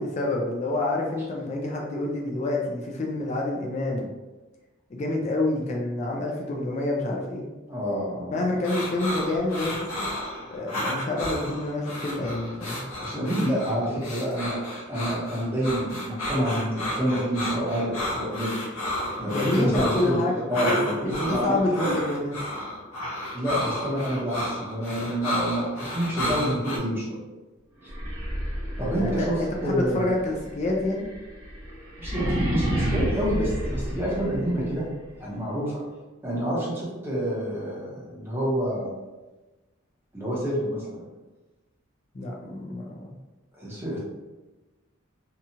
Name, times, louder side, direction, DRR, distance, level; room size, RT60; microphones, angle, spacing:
voice 1, 0.0-4.1 4.9-7.5 8.3-10.1 10.5-12.8 19.2-20.8 21.0-22.3 29.0-31.1 42.1-43.1, left 2 dB, 35° left, -1 dB, 0.3 m, -28 dB
voice 2, 7.7-8.4 13.0-18.6 19.2-20.2 20.5-21.9 23.3-27.2 28.8-29.4 29.6-30.0 32.0-34.9 35.2-35.8 36.2-38.9 40.1-41.0 43.6-44.0, equal, 10° right, -7 dB, 0.8 m, -28 dB
sound 1, 8.6-26.8, left 1 dB, 80° left, 0.7 m, -32 dB
sound 2, 27.8-34.7, equal, 70° right, 1.0 m, -30 dB
2.8 x 2.3 x 2.7 m, 1.2 s
head